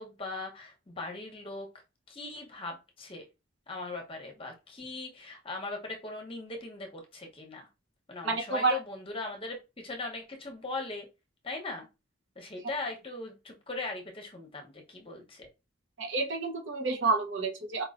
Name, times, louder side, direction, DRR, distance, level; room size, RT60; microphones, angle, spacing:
voice 1, 0.0-1.7 2.1-3.3 3.7-7.7 8.1-11.1 11.4-11.9 12.4-15.5, left 3 dB, 25° left, 0.9 m, -39 dB
voice 2, 8.2-8.8 16.0-17.8, right 3 dB, 65° right, 0.9 m, -29 dB
4.6 x 3.0 x 2.5 m
head